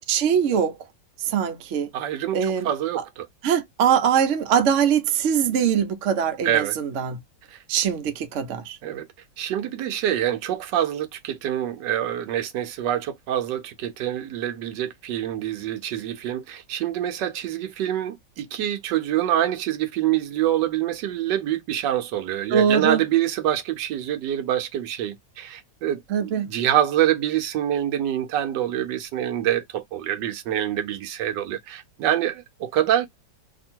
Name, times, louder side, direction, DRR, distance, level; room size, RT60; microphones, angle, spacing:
voice 1, 0.1-0.7 1.2-1.9 2.3-2.7 3.0-3.1 3.4-7.2 7.7-8.8 22.5-23.0 26.1-26.5, right 8 dB, 60° right, 0.8 m, -22 dB
voice 2, 1.9-3.3 6.4-6.8 7.5-7.6 8.8-9.1 9.4-33.1, right 11 dB, 80° right, 1.2 m, -26 dB
2.8 x 2.5 x 4.3 m
omnidirectional pair, 1.9 m